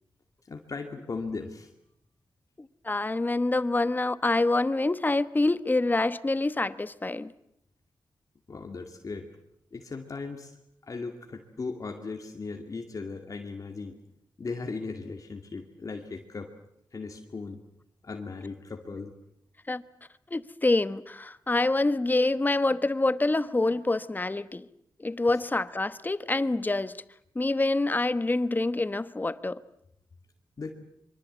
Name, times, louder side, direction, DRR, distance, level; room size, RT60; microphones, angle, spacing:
voice 1, 0.5-1.7 8.5-9.3 9.7-10.5 10.8-14.0 14.4-16.5 16.9-17.6 18.0-19.1 30.6-30.7, left 4 dB, 50° left, 2.4 m, -37 dB
voice 2, 2.6-7.3 19.7-19.8 20.3-24.7 25.0-27.0 27.3-29.6, left 2 dB, 25° left, 1.1 m, -26 dB
24.5 x 24.0 x 8.1 m
cardioid pair, 85°, 8 cm